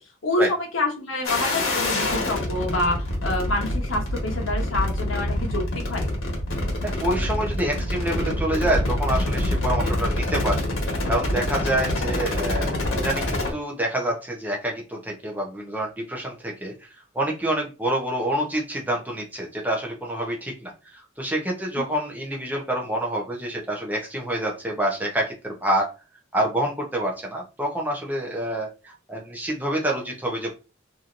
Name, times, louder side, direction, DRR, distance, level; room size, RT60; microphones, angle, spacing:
voice 1, 0.2-6.1, left 2 dB, 75° left, 2 dB, 0.9 m, -27 dB
sound 1, 1.2-13.5, left 1 dB, 90° left, 1.2 m, -26 dB
voice 2, 6.8-10.6 11.1-16.7 17.1-25.9 26.3-30.5, right 1 dB, 10° right, -1 dB, 0.6 m, -27 dB
3.0 x 2.6 x 2.5 m, 0.31 s
head